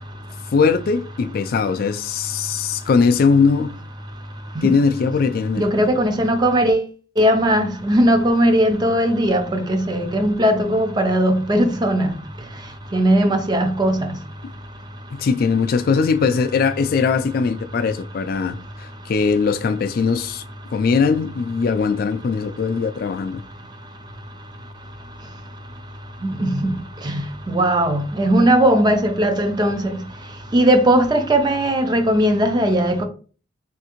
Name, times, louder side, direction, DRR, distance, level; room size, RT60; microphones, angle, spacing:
voice 1, 0.5-3.8 4.6-5.6 15.1-20.4 20.7-23.4, left 5 dB, 55° left, 0.3 m, -20 dB
voice 2, 5.6-6.8 7.2-12.1 12.9-14.1 26.2-26.8 27.0-30.0 30.5-33.0, right 1 dB, 25° right, 0.4 m, -18 dB
3.6 x 2.5 x 2.8 m
head